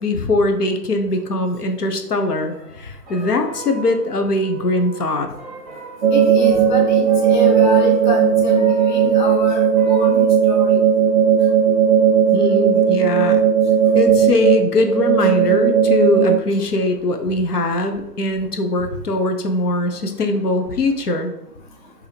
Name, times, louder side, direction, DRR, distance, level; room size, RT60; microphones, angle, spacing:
voice 1, 0.0-5.3 12.3-13.4 13.9-21.3, left 2 dB, 70° left, 5 dB, 0.9 m, -21 dB
sound 1, 2.5-10.2, right 3 dB, 10° right, 1.0 m, -37 dB
sound 2, 6.0-16.4, right 8 dB, 45° right, 0.5 m, -16 dB
voice 2, 6.1-10.8, left 2 dB, 30° left, -1 dB, 0.6 m, -26 dB
4.6 x 2.9 x 3.3 m, 0.83 s
figure-of-eight pair, 140°, 50 cm